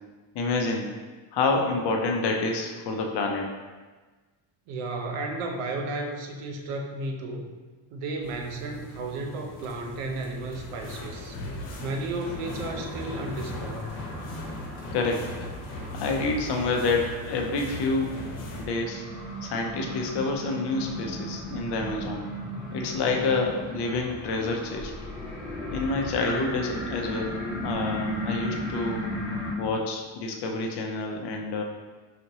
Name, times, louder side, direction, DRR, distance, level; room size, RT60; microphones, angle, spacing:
voice 1, 0.3-0.9 1.3-3.5 14.9-15.2 16.0-18.2 18.6-19.0 19.4-22.3 22.7-24.9 25.7-29.1 29.6-31.6, left 3 dB, 55° left, 2 dB, 0.6 m, -28 dB
voice 2, 4.7-7.5 7.9-11.3 11.8-14.0, right 2 dB, 85° right, 2 dB, 0.8 m, -33 dB
sound 1, 8.2-18.6, left 1 dB, 75° left, 1.0 m, -39 dB
sound 2, 12.2-29.5, equal, 5° left, 0.4 m, -36 dB
5.0 x 2.9 x 2.7 m, 1.3 s
cardioid pair, 165°, 50 cm